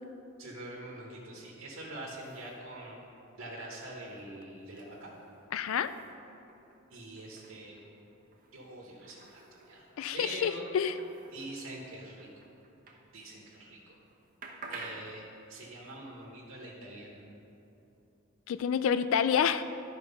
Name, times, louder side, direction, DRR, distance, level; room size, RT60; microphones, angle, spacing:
voice 1, 0.4-3.0 3.4-5.1 6.9-7.8 8.5-9.9 10.1-10.7 11.3-12.3 13.1-14.0 14.7-17.3, right 1 dB, 70° right, -4 dB, 1.4 m, -44 dB
sound 1, 1.9-13.6 13.9-18.0, right 3 dB, 40° right, 1.0 m, -53 dB
voice 2, 5.5-5.9 10.0-10.9 18.5-19.6, left 8 dB, 70° left, 12 dB, 0.3 m, -28 dB
12.0 x 4.6 x 5.5 m, 2.8 s
head